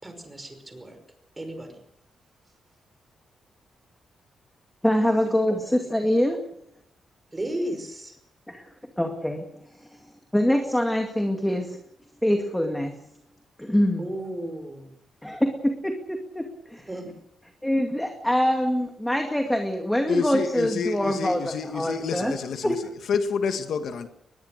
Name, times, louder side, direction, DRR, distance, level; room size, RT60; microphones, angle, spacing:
voice 1, 0.0-1.0 1.4-1.8 7.3-8.2 14.0-14.9 16.9-17.1, right 1 dB, 15° right, 5.5 m, -34 dB
voice 2, 4.8-6.4 8.5-8.6 9.0-9.5 10.3-11.8 12.2-13.0 13.6-14.1 15.2-16.9 17.6-22.3 22.6-22.8, equal, 5° left, 2.3 m, -24 dB
voice 3, 20.1-22.8 23.1-24.1, left 5 dB, 70° left, 1.9 m, -28 dB
22.5 x 21.5 x 6.6 m
wide cardioid pair, 140°, 0 cm